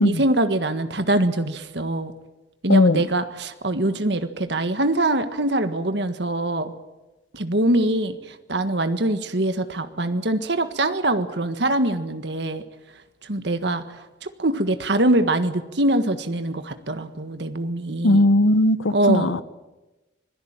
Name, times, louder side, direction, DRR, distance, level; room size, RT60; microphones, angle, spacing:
voice 1, 0.0-2.1 2.6-6.7 7.3-12.6 13.2-18.3 18.9-19.4, right 1 dB, 65° right, 1.6 m, -23 dB
voice 2, 2.7-3.0 18.0-19.4, left 1 dB, 85° left, 1.0 m, -18 dB
25.5 x 17.5 x 8.9 m
head